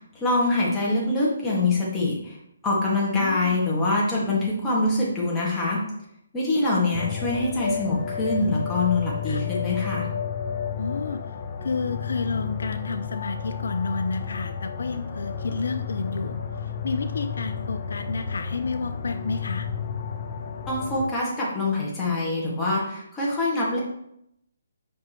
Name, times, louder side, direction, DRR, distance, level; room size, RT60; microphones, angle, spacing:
voice 1, 0.0-2.4 2.6-5.8 6.3-10.1 20.7-23.8, left 2 dB, 15° left, -5 dB, 1.9 m, -24 dB
voice 2, 3.1-3.7 9.3-9.4 10.8-11.2 11.6-16.4 16.8-19.7, left 4 dB, 70° left, 8 dB, 0.4 m, -30 dB
sound 1, 6.9-21.1, left 7 dB, 40° left, 0.8 m, -32 dB
6.0 x 5.3 x 3.1 m, 0.77 s
hypercardioid pair, 150°, 0 cm